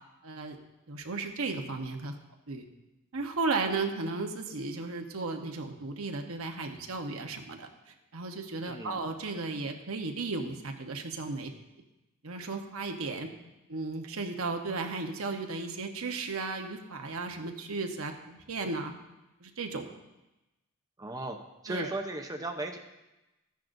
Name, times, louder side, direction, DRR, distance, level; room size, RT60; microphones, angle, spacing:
voice 1, 0.2-0.6 0.9-2.1 2.5-2.6 3.1-7.7 8.1-11.5 12.2-13.3 13.7-18.9 19.4-19.9 21.7-21.9, right 3 dB, 75° right, 4 dB, 1.1 m, -35 dB
voice 2, 8.6-9.0 21.0-21.4 21.6-22.8, right 1 dB, 15° right, 3 dB, 0.7 m, -36 dB
14.0 x 10.5 x 2.6 m, 0.99 s
head